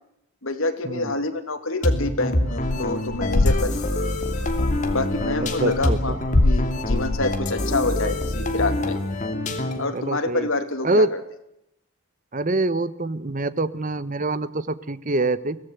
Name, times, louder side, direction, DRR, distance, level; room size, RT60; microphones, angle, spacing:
voice 1, 0.4-3.9 4.9-9.0 9.8-11.2, left 2 dB, 70° left, 7 dB, 2.7 m, -27 dB
sound 1, 1.8-10.0, left 1 dB, 35° left, 2.8 m, -26 dB
sound 2, 2.5-2.8 3.1-7.7, left 2 dB, 50° left, 0.8 m, -24 dB
voice 2, 5.6-6.2 9.9-10.5 10.8-11.1 12.3-15.6, right 2 dB, 35° right, 15 dB, 1.0 m, -24 dB
23.0 x 17.5 x 8.1 m, 0.80 s
head